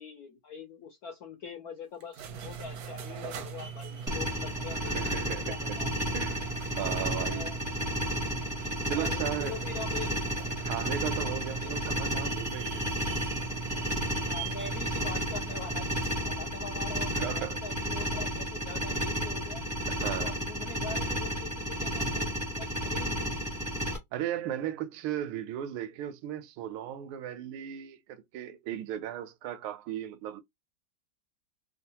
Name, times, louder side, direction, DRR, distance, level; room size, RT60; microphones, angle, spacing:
voice 1, 0.0-5.9 7.3-7.6 8.8-10.2 11.6-11.7 14.2-19.7 20.2-23.3, left 5 dB, 70° left, 0.9 m, -43 dB
sound 1, 2.0-16.3, right 7 dB, 70° right, 0.9 m, -41 dB
sound 2, 4.1-24.0, equal, 15° right, 0.7 m, -32 dB
voice 2, 4.8-5.8 6.1-6.4 6.8-7.5 8.9-9.6 10.6-12.9 17.1-17.6 20.0-20.4 24.1-30.4, right 11 dB, 85° right, 1.5 m, -36 dB
3.6 x 2.3 x 2.7 m
omnidirectional pair, 2.3 m